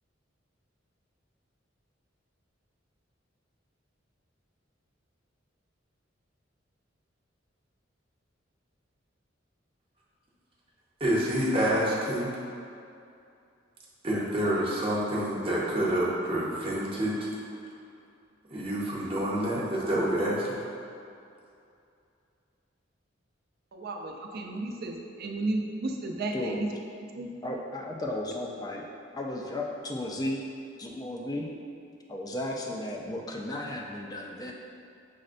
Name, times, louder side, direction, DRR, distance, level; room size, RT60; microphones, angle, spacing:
voice 1, 11.0-12.3 14.0-17.3 18.5-20.6, right 1 dB, 30° right, -6 dB, 0.7 m, -28 dB
voice 2, 23.7-26.7 27.1-27.3, right 2 dB, 55° right, 2 dB, 0.4 m, -33 dB
voice 3, 26.3-26.6 27.4-28.8 29.1-30.4 30.8-31.5 32.1-34.5, left 1 dB, 20° left, 0 dB, 0.3 m, -34 dB
6.2 x 2.1 x 2.5 m, 2.5 s
head